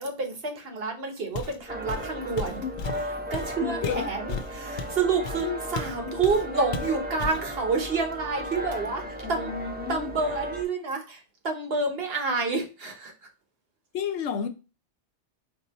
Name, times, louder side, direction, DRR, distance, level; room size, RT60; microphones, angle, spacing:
voice 1, 0.0-2.6 3.3-9.5 9.9-13.1, right 4 dB, 60° right, 1.1 m, -29 dB
Walk footsteps, 1.3-1.6 1.9-6.0 6.2-6.5 6.7-7.5, left 4 dB, 60° left, 0.6 m, -34 dB
sound 1, 1.7-10.6, equal, 15° right, 0.3 m, -35 dB
voice 2, 3.6-4.1 5.4-5.6 9.2-10.1 13.9-14.5, left 7 dB, 80° left, 0.9 m, -31 dB
4.6 x 2.7 x 4.0 m
omnidirectional pair, 1.2 m